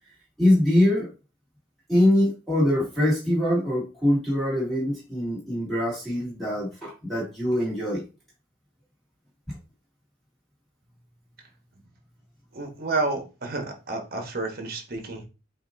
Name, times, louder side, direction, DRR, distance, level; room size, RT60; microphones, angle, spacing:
voice 1, 0.4-1.1 1.9-8.0 9.5-9.6, left 1 dB, ahead, -9 dB, 2.3 m, -23 dB
voice 2, 12.5-15.2, right 3 dB, 45° right, 3 dB, 1.1 m, -30 dB
7.7 x 2.6 x 2.6 m, 0.31 s
head